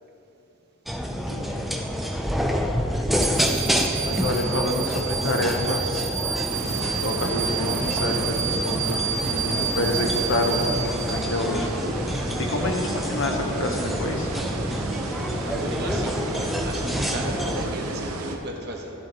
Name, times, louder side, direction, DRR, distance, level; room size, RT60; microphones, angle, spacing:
sound 1, 0.9-17.6, equal, ahead, 0.5 m, -28 dB
voice 1, 1.1-1.7 4.0-6.1 7.0-9.0 9.3-10.7 11.1-11.7 12.1-14.3, left 1 dB, 60° left, 2 dB, 1.1 m, -28 dB
sound 2, 3.2-11.7, right 7 dB, 65° right, 0.4 m, -30 dB
sound 3, 6.5-18.4, right 2 dB, 90° right, 1.0 m, -33 dB
voice 2, 15.4-18.9, right 1 dB, 45° right, 0 dB, 1.3 m, -34 dB
13.5 x 10.5 x 3.0 m, 3.0 s
head